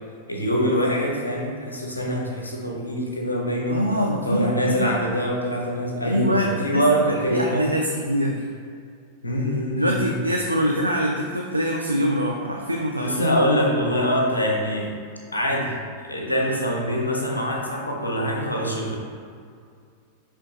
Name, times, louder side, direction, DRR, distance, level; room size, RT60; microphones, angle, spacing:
voice 1, 0.3-3.8 4.2-7.7 9.2-10.2 13.0-14.9 15.3-15.7 16.1-19.0, equal, 80° left, -1 dB, 1.0 m, -24 dB
voice 2, 3.7-5.0 6.0-8.5 9.7-13.2, equal, 85° right, 0 dB, 0.4 m, -24 dB
9.9 x 3.5 x 2.8 m, 2.2 s
figure-of-eight pair, 90°, 0 cm